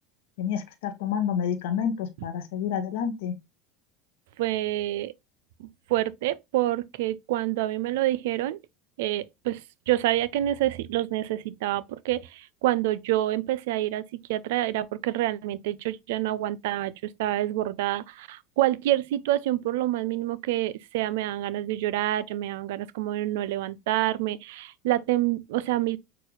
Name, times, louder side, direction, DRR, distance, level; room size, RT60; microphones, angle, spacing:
voice 1, 0.4-3.3, left 8 dB, 80° left, 0.7 m, -29 dB
voice 2, 4.4-5.1 5.6-8.6 9.0-9.6 9.9-14.0 14.3-26.0, right 14 dB, 80° right, 0.4 m, -27 dB
6.2 x 2.4 x 3.1 m
supercardioid pair, 95°, 0 cm